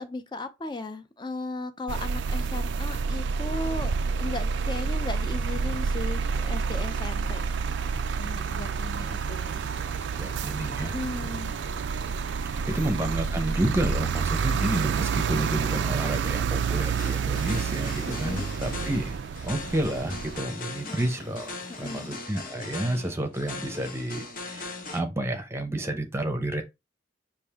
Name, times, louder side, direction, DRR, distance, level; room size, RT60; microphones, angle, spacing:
voice 1, 0.0-7.4 8.2-9.6 10.8-11.5 13.0-13.1 18.0-18.5 20.9-21.1 21.7-22.1, left 2 dB, 25° left, 0.5 m, -36 dB
sound 1, 1.9-20.4, right 5 dB, 70° right, 0.4 m, -29 dB
sound 2, 4.2-22.2, left 2 dB, 85° left, 1.5 m, -53 dB
voice 2, 10.2-11.0 12.0-12.2 12.6-21.5 21.8-26.6, right 1 dB, 15° right, 0.7 m, -30 dB
sound 3, 17.0-25.0, left 3 dB, 50° left, 0.9 m, -39 dB
5.3 x 2.5 x 3.5 m
head